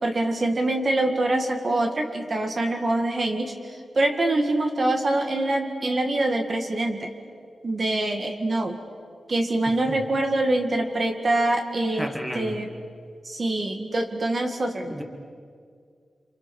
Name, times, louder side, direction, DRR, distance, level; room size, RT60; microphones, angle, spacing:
voice 1, 0.0-7.1 7.6-8.8 9.3-12.7 13.2-15.0, right 2 dB, 35° right, 4 dB, 2.0 m, -25 dB
voice 2, 11.9-12.5 14.9-15.0, equal, 5° right, 4 dB, 2.2 m, -32 dB
29.0 x 27.0 x 7.2 m, 2.1 s
wide cardioid pair, 165°, 0 cm